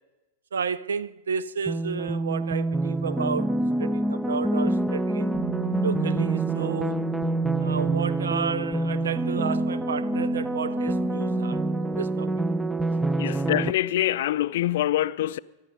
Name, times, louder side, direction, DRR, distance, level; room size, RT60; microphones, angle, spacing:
voice 1, 0.5-5.4 5.8-7.0 7.6-12.3, right 7 dB, 70° right, 0.5 m, -32 dB
sound 1, 1.7-13.7, right 2 dB, 5° right, 0.5 m, -26 dB
Bass guitar, 5.3-11.6, right 8 dB, 40° right, 7.3 m, -37 dB
voice 2, 13.2-15.4, left 13 dB, 55° left, 0.4 m, -25 dB
24.5 x 10.5 x 5.4 m
figure-of-eight pair, 90°, 0 cm